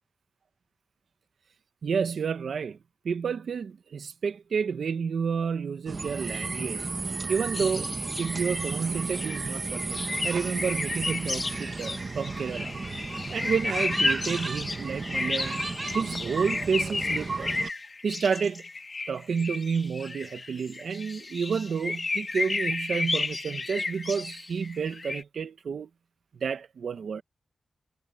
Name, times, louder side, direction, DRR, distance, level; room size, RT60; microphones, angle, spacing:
voice 1, 1.8-2.8 3.0-6.9 7.3-12.7 13.3-15.6 15.9-17.5 18.0-18.7 19.1-25.9 26.3-27.2, right 6 dB, 70° right, 0.9 m, -30 dB
sound 1, 5.9-17.7, right 3 dB, 35° right, 1.1 m, -33 dB
sound 2, 7.5-25.2, left 3 dB, 35° left, 1.6 m, -33 dB
wide cardioid pair, 145°, 0 cm